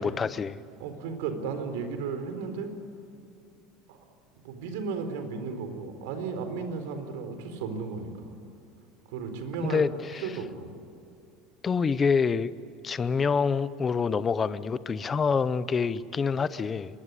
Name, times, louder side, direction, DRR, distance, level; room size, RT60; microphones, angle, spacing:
voice 1, 0.0-0.6 9.6-10.3 11.6-12.5 12.8-17.0, left 5 dB, 15° left, 15 dB, 0.6 m, -27 dB
voice 2, 0.8-2.7 3.9-4.0 4.4-8.3 9.1-9.9 10.2-10.7, right 5 dB, 90° right, 8 dB, 4.5 m, -34 dB
24.5 x 22.0 x 10.0 m, 2.7 s
cardioid pair, 175°, 0 cm